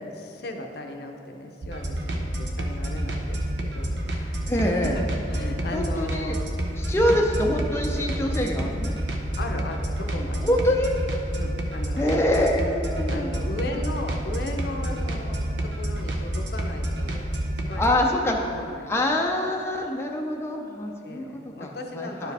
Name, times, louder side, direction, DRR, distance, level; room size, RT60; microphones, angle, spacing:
voice 1, 0.1-6.4 7.0-7.2 9.4-10.6 11.4-12.3 13.1-17.3 17.7-19.3 21.0-22.3, left 2 dB, 60° left, 3 dB, 0.7 m, -37 dB
sound 1, 1.6-17.9, right 1 dB, 85° right, 0.8 m, -29 dB
voice 2, 4.5-5.0 5.7-6.4 6.7-9.0 10.4-10.9 12.0-13.3 17.8-18.4 18.9-22.3, left 1 dB, 15° left, 0 dB, 0.4 m, -25 dB
11.5 x 4.8 x 3.4 m, 2.6 s
head